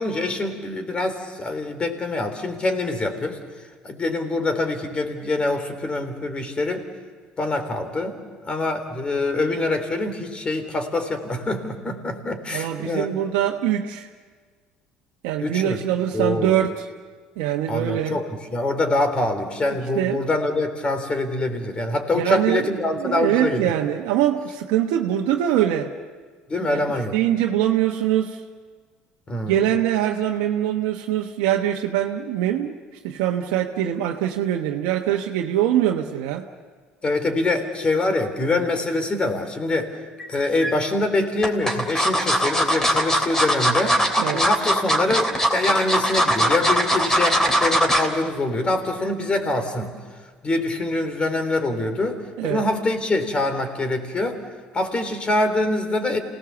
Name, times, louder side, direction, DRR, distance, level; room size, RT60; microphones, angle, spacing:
voice 1, 0.0-3.4 3.8-6.8 7.4-8.2 8.4-13.1 15.4-15.8 16.1-16.7 17.7-23.7 26.5-27.2 29.3-29.6 37.0-39.9 40.3-44.0 44.3-49.9 50.4-54.4 54.7-56.2, left 2 dB, 30° left, 8 dB, 3.6 m, -24 dB
voice 2, 12.5-14.1 15.2-16.9 17.4-18.2 19.9-20.2 22.1-25.9 26.6-26.8 27.1-28.4 29.4-32.8 33.0-36.5 44.2-44.4 52.4-52.6, right 11 dB, 85° right, 1 dB, 1.1 m, -23 dB
sound 1, 40.2-40.7 41.4-48.1 48.5-48.8 49.1-49.2, equal, 15° left, 3.2 m, -20 dB
28.5 x 18.5 x 7.1 m, 1.5 s
supercardioid pair, 85°, 3 cm